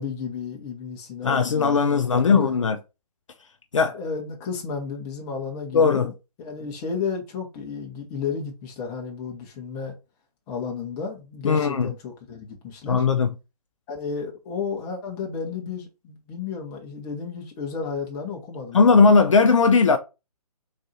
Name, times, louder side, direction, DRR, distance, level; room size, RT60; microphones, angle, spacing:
voice 1, 0.0-2.6 3.9-6.1 6.4-9.9 10.5-13.0 13.9-19.2, left 5 dB, 15° left, 0.9 m, -32 dB
voice 2, 1.2-2.8 3.7-4.0 5.7-6.1 11.4-11.9 12.9-13.3 18.7-20.0, left 5 dB, 55° left, 0.5 m, -18 dB
3.9 x 2.6 x 4.2 m
figure-of-eight pair, 140°, 20 cm